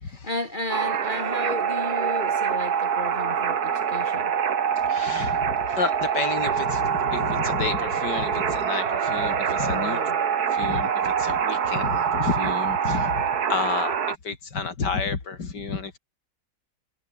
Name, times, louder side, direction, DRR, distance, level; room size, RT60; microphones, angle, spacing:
voice 1, 0.0-4.3 9.7-10.2, left 2 dB, 30° left, 1.6 m, -33 dB
sound 1, 0.7-14.2, right 7 dB, 65° right, 1.9 m, -25 dB
voice 2, 4.9-10.0 10.5-16.0, left 4 dB, 90° left, 3.5 m, -30 dB
omnidirectional pair, 1.8 m